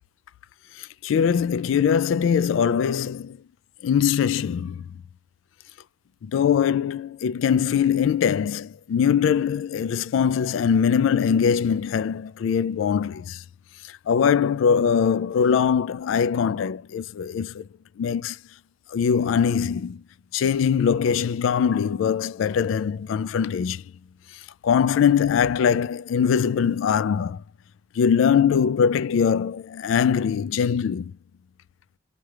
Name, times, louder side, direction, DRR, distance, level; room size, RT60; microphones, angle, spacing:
voice 1, 0.8-3.4 3.8-4.9 6.2-13.4 14.1-17.7 18.0-18.4 18.9-20.0 20.3-23.8 24.6-27.4 28.0-31.1, left 7 dB, 75° left, 0.3 m, -22 dB
3.3 x 2.3 x 4.2 m
head